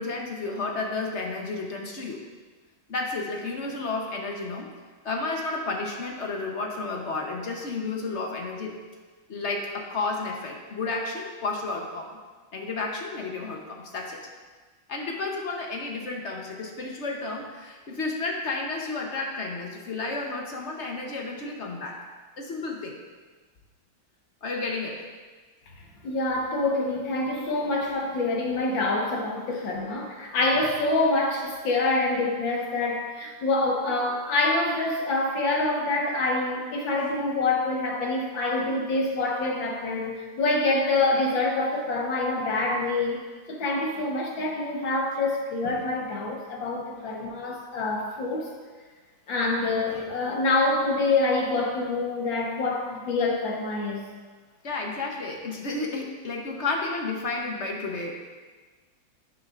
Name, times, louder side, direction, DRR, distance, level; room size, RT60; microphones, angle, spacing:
voice 1, 0.0-2.2 2.9-4.7 5.0-8.7 9.3-12.2 12.5-14.2 14.9-22.0 22.4-23.0 24.4-25.1 29.5-29.7 54.6-58.1, left 3 dB, 50° left, 1 dB, 0.9 m, -32 dB
voice 2, 26.0-43.2 43.5-48.5 49.3-54.0, left 2 dB, 65° left, -1 dB, 1.9 m, -26 dB
10.5 x 9.7 x 2.5 m, 1.4 s
omnidirectional pair, 2.3 m